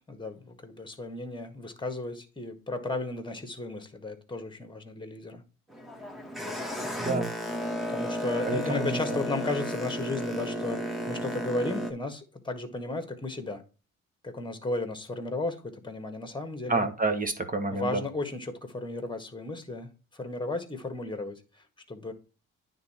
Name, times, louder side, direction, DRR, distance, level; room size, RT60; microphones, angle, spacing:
voice 1, 0.0-5.4 6.4-6.6 7.9-13.6 14.2-16.9 17.7-22.1, left 2 dB, 15° left, 7 dB, 1.8 m, -34 dB
Boat Water vehicle, 5.7-11.9, equal, ahead, 1.5 m, -33 dB
voice 2, 7.0-7.3 8.4-9.2 16.7-18.0, right 3 dB, 25° right, 7 dB, 1.5 m, -29 dB
9.4 x 3.8 x 4.4 m, 0.33 s
cardioid pair, 70°, 30 cm